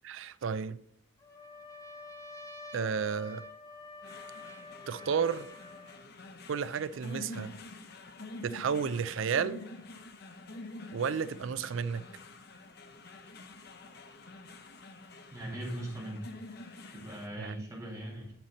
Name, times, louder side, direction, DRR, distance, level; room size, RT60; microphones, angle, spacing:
voice 1, 0.0-0.8 2.7-3.4 4.9-5.5 6.5-7.6 8.4-9.6 10.9-12.0 17.4-17.6, right 6 dB, 70° right, 0.4 m, -32 dB
Trumpet, 1.2-6.0, left 3 dB, 15° left, 1.1 m, -48 dB
sound 1, 4.0-17.3, left 2 dB, 50° left, 0.7 m, -48 dB
voice 2, 15.3-16.3 16.9-18.3, right 1 dB, 15° right, 2.1 m, -40 dB
10.5 x 4.2 x 4.2 m
head